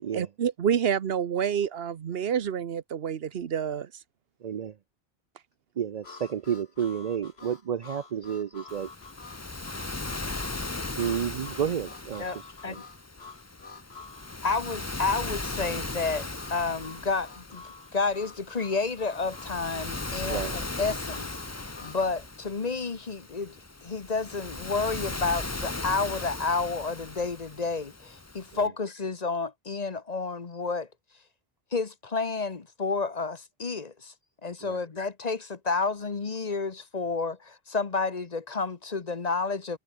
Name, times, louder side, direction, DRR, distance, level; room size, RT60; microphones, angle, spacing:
voice 1, 0.1-3.9, right 8 dB, 70° right, 1.1 m, -28 dB
voice 2, 4.4-4.7 5.8-8.9 11.0-12.3 12.7-12.8 20.3-20.6 34.6-34.8, right 8 dB, 50° right, 0.6 m, -31 dB
Harmonica, 6.0-22.0, left 4 dB, 80° left, 2.3 m, -49 dB
Waves surf, 8.7-28.7, left 2 dB, 15° left, 0.8 m, -38 dB
voice 3, 12.2-12.8 14.4-17.6 17.9-21.3 21.5-23.6 23.8-30.9 31.7-34.1 34.4-39.8, left 4 dB, 40° left, 1.1 m, -30 dB
omnidirectional pair, 1.0 m